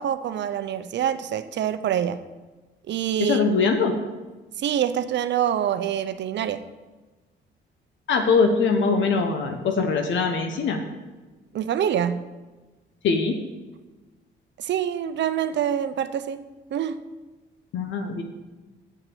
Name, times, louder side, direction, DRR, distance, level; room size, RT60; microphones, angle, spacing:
voice 1, 0.0-2.2 2.9-3.4 4.6-6.6 11.5-12.3 14.6-16.5 16.7-17.0, right 9 dB, 65° right, 11 dB, 0.7 m, -25 dB
voice 2, 3.2-3.9 8.1-10.8 13.0-13.4 17.7-18.2, left 4 dB, 70° left, 5 dB, 1.1 m, -22 dB
8.3 x 7.0 x 7.0 m, 1.2 s
cardioid pair, 90°, 20 cm